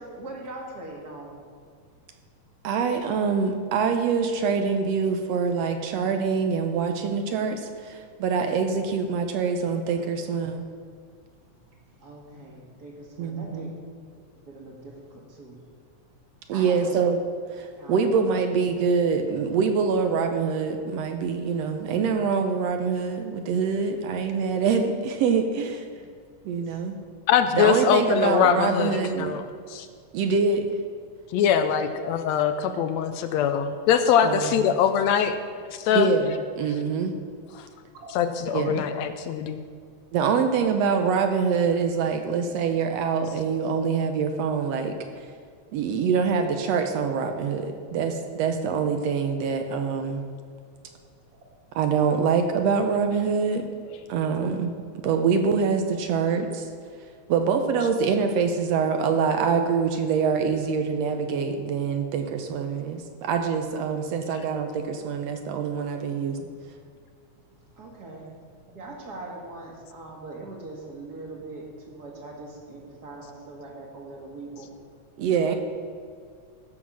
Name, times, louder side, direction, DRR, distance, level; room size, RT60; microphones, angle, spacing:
voice 1, 0.0-1.4 6.9-7.0 12.0-13.8 14.5-15.6 16.5-17.0 17.8-18.1 26.6-27.1 37.9-38.2 45.7-45.8 57.5-57.6 67.8-68.3 68.7-74.7, right 2 dB, 35° right, -1 dB, 2.1 m, -41 dB
voice 2, 2.6-10.6 13.2-13.7 16.5-17.2 17.5-25.8 26.4-27.0 27.5-29.4 30.1-30.7 34.2-34.4 35.9-37.1 38.5-38.8 40.1-45.2 45.7-50.2 51.7-53.7 54.1-54.7 55.0-56.7 57.3-66.5 75.2-75.6, right 5 dB, 75° right, 6 dB, 1.7 m, -25 dB
voice 3, 27.3-29.4 29.7-29.9 31.3-35.4 35.7-36.1 37.5-37.7 38.1-39.6 64.3-64.4, left 8 dB, 75° left, 9 dB, 1.7 m, -23 dB
15.0 x 6.1 x 6.2 m, 2.1 s
omnidirectional pair, 3.4 m